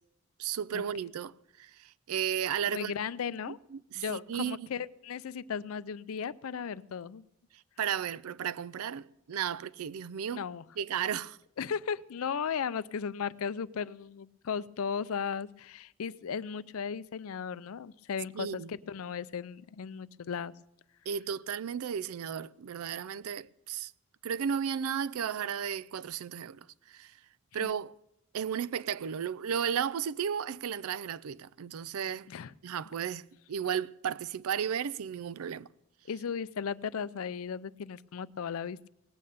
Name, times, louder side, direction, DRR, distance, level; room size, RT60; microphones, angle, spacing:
voice 1, 0.4-2.9 3.7-4.7 7.8-10.4 10.8-11.4 18.3-18.8 21.1-23.9 24.2-27.2 27.5-27.9 28.3-32.3 32.6-35.7, right 8 dB, 85° right, 0.4 m, -34 dB
voice 2, 2.7-3.6 3.9-7.2 10.3-10.6 11.6-20.5 27.6-27.7 32.3-32.5 36.1-38.9, left 6 dB, 80° left, 0.4 m, -36 dB
18.5 x 8.6 x 6.7 m
head